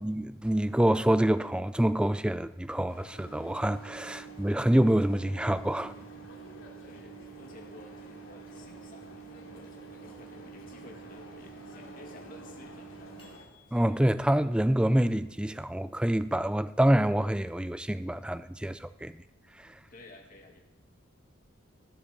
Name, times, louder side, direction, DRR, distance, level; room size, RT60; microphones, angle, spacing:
voice 1, 0.0-5.9 13.7-19.2 19.6-19.8, right 1 dB, 5° right, 0.3 m, -26 dB
sound 1, 2.9-13.5, left 1 dB, 85° left, 2.6 m, -50 dB
Microwave oven, 3.1-16.6, right 11 dB, 25° left, 3.7 m, -51 dB
voice 2, 6.8-13.1 19.9-20.6, left 2 dB, 40° left, 2.3 m, -53 dB
16.0 x 7.6 x 7.2 m
head